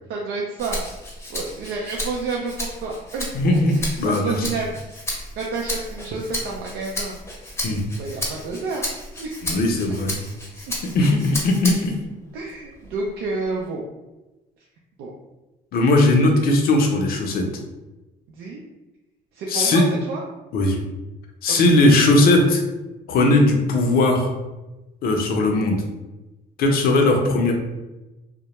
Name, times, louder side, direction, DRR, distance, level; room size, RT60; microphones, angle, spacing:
voice 1, 0.1-0.8 1.3-3.3 3.8-4.7 5.3-7.2 8.0-8.9 9.2-9.3 10.7-10.8 12.3-13.8 15.0-15.1 18.4-18.6 19.3-20.2 21.5-21.6 26.6-27.0, right 3 dB, 80° right, -2 dB, 0.4 m, -29 dB
Rattle (instrument), 0.6-12.0 12.5-13.7, left 1 dB, 15° left, 0.6 m, -33 dB
voice 2, 3.3-4.5 7.6-7.8 9.4-10.2 10.9-11.9 15.7-17.4 19.5-19.8 20.5-20.8 21.4-22.6 23.1-24.3 25.0-25.8 26.6-27.5, left 2 dB, 60° left, 2 dB, 0.6 m, -18 dB
2.2 x 2.0 x 2.9 m, 1.0 s
cardioid pair, 110°, 17 cm